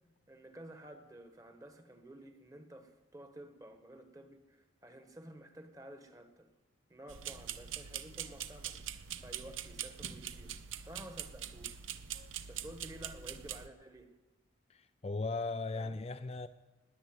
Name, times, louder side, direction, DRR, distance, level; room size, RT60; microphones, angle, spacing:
voice 1, 0.3-6.5 6.9-11.8 12.5-14.1 15.7-16.0, right 1 dB, 15° right, 1.3 m, -52 dB
sound 1, 7.1-13.7, right 9 dB, 75° right, 0.8 m, -43 dB
voice 2, 14.7-16.5, left 3 dB, 30° left, 0.4 m, -38 dB
20.0 x 8.3 x 7.9 m
head